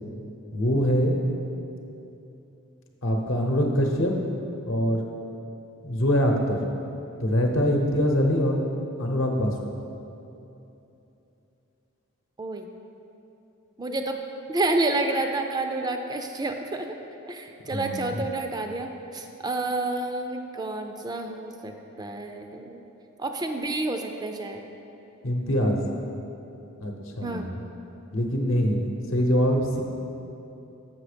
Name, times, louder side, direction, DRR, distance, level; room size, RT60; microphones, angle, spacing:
voice 1, 0.5-1.2 3.0-4.1 4.6-5.0 5.8-6.6 7.2-8.6 9.0-9.5 17.7-18.1 25.2-25.8 26.8-27.5 28.1-29.8, equal, 70° left, 2 dB, 0.9 m, -23 dB
voice 2, 13.8-14.2 14.5-16.9 17.3-22.8 23.2-24.6 27.2-27.5, right 2 dB, 20° right, 5 dB, 0.3 m, -29 dB
7.3 x 5.6 x 5.0 m, 3.0 s
head